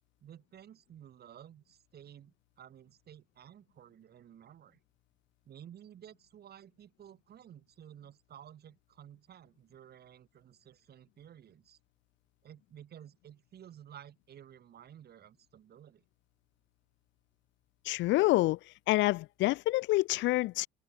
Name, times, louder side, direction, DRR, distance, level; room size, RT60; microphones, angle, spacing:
voice 1, 0.2-4.8 5.4-11.8 12.4-16.0, right 10 dB, 50° right, 7.6 m, -53 dB
voice 2, 17.9-18.6 18.9-20.7, left 19 dB, 60° left, 0.4 m, -27 dB
cardioid pair, 105°, 21 cm